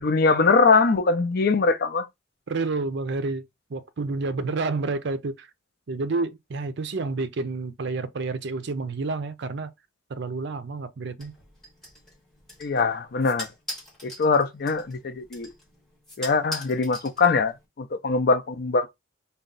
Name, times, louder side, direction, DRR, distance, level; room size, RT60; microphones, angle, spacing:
voice 1, 0.0-2.1 12.6-13.5 14.0-15.5 16.2-18.9, left 4 dB, 50° left, 0.5 m, -22 dB
voice 2, 2.5-3.4 3.7-5.5 5.9-9.7 10.1-11.3, right 3 dB, 60° right, 0.5 m, -29 dB
sound 1, 11.2-17.7, equal, 5° left, 1.6 m, -42 dB
4.1 x 2.3 x 3.8 m
head